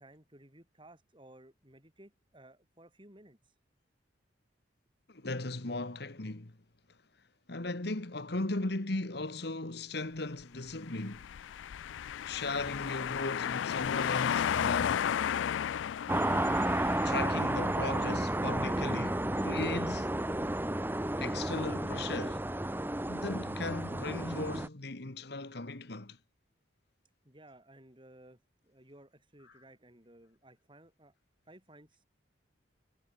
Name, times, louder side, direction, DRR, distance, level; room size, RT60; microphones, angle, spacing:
voice 1, 0.0-3.5 27.2-31.1 31.5-32.0, right 1 dB, 25° right, 7.0 m, -57 dB
voice 2, 5.1-6.5 7.5-11.3 12.2-15.0 17.0-20.1 21.2-22.4 23.1-26.2, left 2 dB, 60° left, 1.6 m, -37 dB
sound 1, 11.0-17.8, left 9 dB, 85° left, 0.4 m, -33 dB
sound 2, 16.1-24.7, right 1 dB, 10° right, 1.1 m, -32 dB
head